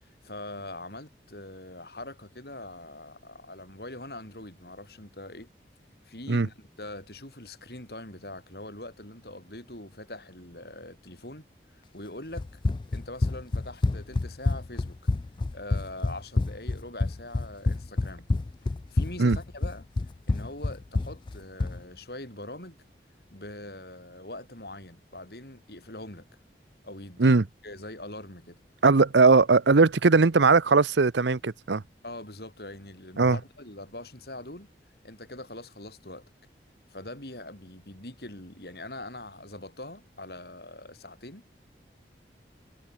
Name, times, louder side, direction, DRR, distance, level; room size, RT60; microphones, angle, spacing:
voice 1, 0.2-5.5 6.0-11.4 11.7-12.6 12.9-15.0 15.5-18.3 18.9-19.9 20.3-22.8 23.3-26.3 26.8-28.6 32.0-34.7 35.0-36.3 36.9-41.4, left 1 dB, 65° left, 6.7 m, -42 dB
Run, 12.4-21.8, left 2 dB, 25° left, 0.3 m, -28 dB
voice 2, 28.8-31.8 33.2-33.4, right 4 dB, 90° right, 0.8 m, -19 dB
head